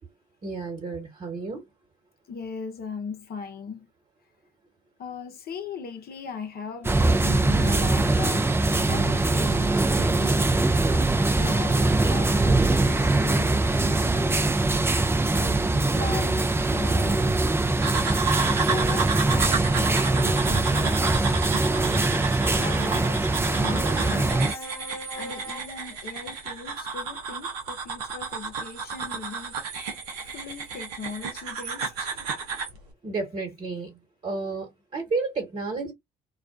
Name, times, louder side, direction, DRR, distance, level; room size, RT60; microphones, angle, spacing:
voice 1, 0.4-1.6 11.9-12.0 33.0-35.9, right 3 dB, 35° right, 1.2 m, -32 dB
voice 2, 2.3-3.9 5.0-10.6 11.3-13.6 15.4-17.4 18.7-21.3 21.8-24.7 25.1-29.6 30.2-32.3, left 5 dB, 50° left, 0.7 m, -38 dB
sound 1, 6.8-24.5, right 2 dB, 10° right, 0.4 m, -22 dB
sound 2, 8.6-14.6 15.5-22.5 23.4-25.6, right 1 dB, 15° left, 1.0 m, -37 dB
sound 3, 17.8-32.8, right 5 dB, 85° right, 0.6 m, -32 dB
2.4 x 2.1 x 2.4 m
hypercardioid pair, 45°, 20 cm